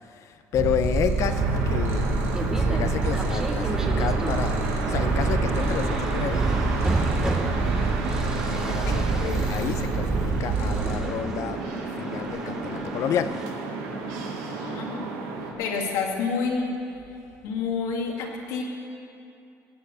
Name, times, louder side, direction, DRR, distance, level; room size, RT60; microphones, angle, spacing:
voice 1, 0.1-2.1 2.5-4.6 4.9-6.5 8.5-11.6 12.0-13.4, left 8 dB, 60° left, 10 dB, 0.8 m, -30 dB
Purr, 0.5-11.0, right 3 dB, 50° right, 2.9 m, -26 dB
sound 1, 1.2-15.5, right 4 dB, 90° right, 1.9 m, -32 dB
sound 2, 2.3-13.5, right 1 dB, 10° right, 1.1 m, -34 dB
voice 2, 14.4-15.1 15.6-16.7 17.4-18.6, left 5 dB, 80° left, -1 dB, 2.4 m, -29 dB
17.5 x 7.2 x 7.8 m, 2.6 s
cardioid pair, 120°, 6 cm